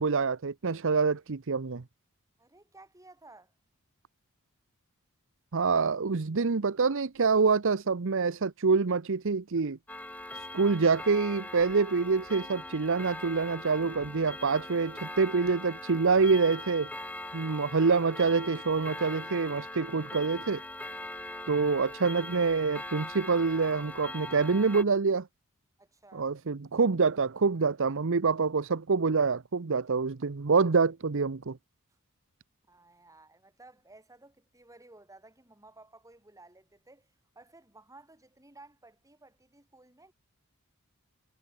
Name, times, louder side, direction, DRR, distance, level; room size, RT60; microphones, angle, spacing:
voice 1, 0.0-1.8 5.5-9.8 10.5-16.9 17.3-20.6 21.5-25.3 26.1-31.6, right 4 dB, 60° right, 0.8 m, -26 dB
voice 2, 2.4-3.5 25.8-26.3 32.7-40.1, right 2 dB, 15° right, 7.8 m, -55 dB
Clock, 9.9-24.8, left 1 dB, 5° left, 1.4 m, -41 dB
head